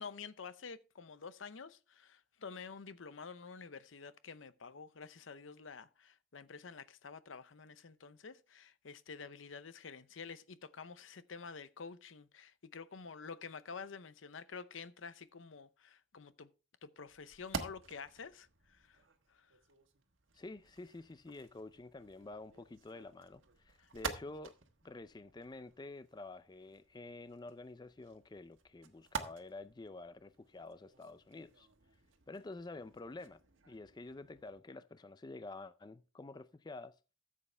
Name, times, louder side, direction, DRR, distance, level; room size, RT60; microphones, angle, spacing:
voice 1, 0.0-16.5 16.8-19.0 19.3-19.5 23.8-23.9, left 5 dB, 80° left, 0.7 m, -49 dB
sound 1, 17.1-34.6, right 5 dB, 90° right, 1.4 m, -50 dB
voice 2, 20.3-24.6 24.8-31.7 32.3-33.4 33.7-36.9, left 2 dB, 20° left, 0.4 m, -49 dB
14.0 x 7.5 x 3.4 m
head